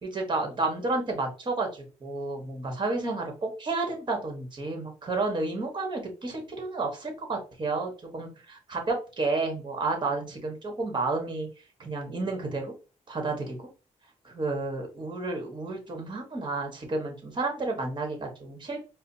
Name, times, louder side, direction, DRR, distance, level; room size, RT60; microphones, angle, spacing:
voice 1, 0.0-11.5 11.8-12.7 13.1-13.6 14.2-18.9, right 3 dB, 40° right, 2 dB, 1.3 m, -31 dB
4.9 x 2.0 x 2.7 m, 0.34 s
cardioid pair, 90°, 13 cm